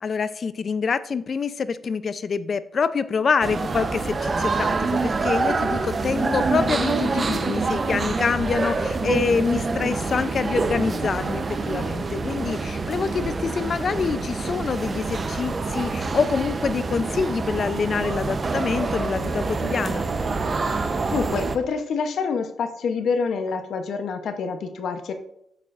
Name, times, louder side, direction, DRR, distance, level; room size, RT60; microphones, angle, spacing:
voice 1, 0.0-20.0, left 5 dB, 50° left, 14 dB, 0.4 m, -26 dB
sound 1, 3.4-21.6, right 4 dB, 40° right, 0.7 m, -26 dB
voice 2, 20.6-25.1, left 5 dB, 70° left, 8 dB, 0.8 m, -27 dB
8.8 x 7.5 x 2.5 m, 0.75 s
cardioid pair, 90°, 0 cm